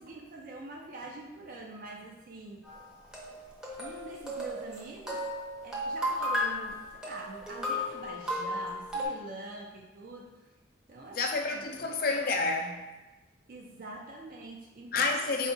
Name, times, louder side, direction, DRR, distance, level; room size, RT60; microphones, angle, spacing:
voice 1, 0.0-2.7 3.8-5.3 5.6-10.3 10.9-11.6 13.5-15.3, right 2 dB, 45° right, 0 dB, 0.4 m, -45 dB
sound 1, 2.6-9.1, left 1 dB, 5° right, 0.6 m, -34 dB
voice 2, 11.1-12.9 14.9-15.5, left 3 dB, 50° left, 3 dB, 0.5 m, -29 dB
5.0 x 2.4 x 3.8 m, 1.1 s
head